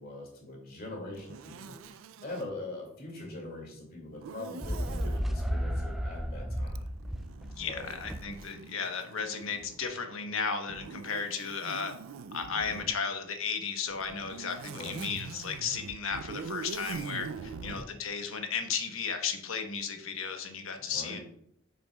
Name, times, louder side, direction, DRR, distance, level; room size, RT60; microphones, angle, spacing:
voice 1, 0.0-6.8 7.7-7.9 12.5-12.8 14.7-15.0 17.4-17.8 20.8-21.2, left 2 dB, 45° left, 0 dB, 2.3 m, -43 dB
Zipper (clothing), 1.1-2.5 4.2-5.3 6.7-9.9 10.7-13.0 13.9-17.9, right 5 dB, 75° right, 0.4 m, -44 dB
sound 1, 4.6-8.4, equal, ahead, 0.4 m, -33 dB
voice 2, 7.5-11.9 12.3-21.2, left 6 dB, 75° left, 5 dB, 1.1 m, -34 dB
8.8 x 6.4 x 2.3 m, 0.69 s
head